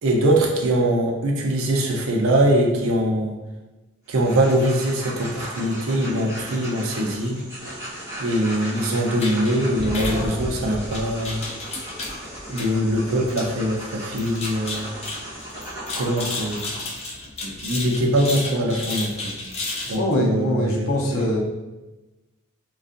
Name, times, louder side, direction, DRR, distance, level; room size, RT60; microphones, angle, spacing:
voice 1, 0.0-3.3 4.1-7.4 8.2-11.4 12.5-14.9 15.9-16.7 17.4-19.3 19.9-21.2, right 1 dB, 70° right, 0 dB, 0.5 m, -22 dB
sound 1, 4.1-16.9, right 1 dB, 15° right, 1.0 m, -37 dB
sound 2, 7.5-15.7, left 2 dB, 10° left, 1.0 m, -42 dB
sound 3, 9.2-20.0, left 2 dB, 30° left, 0.4 m, -33 dB
voice 2, 20.0-21.4, left 1 dB, 80° left, -1 dB, 0.6 m, -22 dB
2.5 x 2.3 x 2.4 m, 1.1 s
head